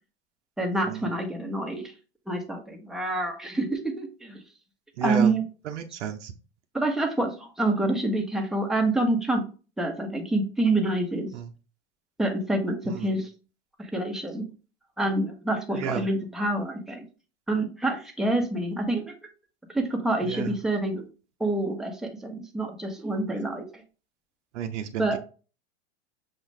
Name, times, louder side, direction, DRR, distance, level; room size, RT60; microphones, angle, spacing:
voice 1, 0.6-1.9 2.3-4.4 5.0-5.4 6.7-9.4 9.8-11.3 12.2-13.3 13.8-14.5 15.0-17.1 17.5-19.1 19.7-21.1 21.4-23.8 25.0-25.2, right 2 dB, ahead, 2 dB, 0.9 m, -27 dB
voice 2, 5.0-5.3 5.7-6.3 11.3-11.5 12.9-13.1 15.7-16.0 20.3-20.6 24.5-25.2, right 8 dB, 85° right, 5 dB, 0.7 m, -32 dB
6.4 x 2.4 x 3.2 m, 0.35 s
hypercardioid pair, 120°, 35 cm